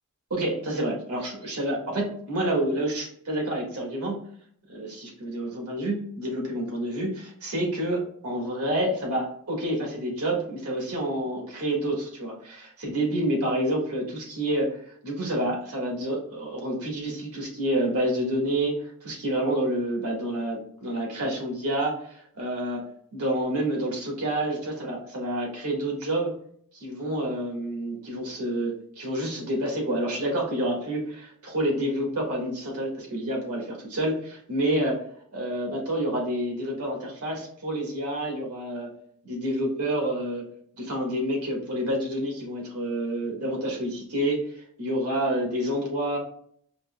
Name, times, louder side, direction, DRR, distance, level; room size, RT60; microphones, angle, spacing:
voice 1, 0.3-4.2 4.7-22.8 23.1-26.3 26.7-35.0 35.3-38.9 39.2-40.4 40.8-44.4 44.8-46.2, right 1 dB, 75° right, -1 dB, 1.6 m, -28 dB
5.3 x 2.8 x 2.3 m, 0.62 s
head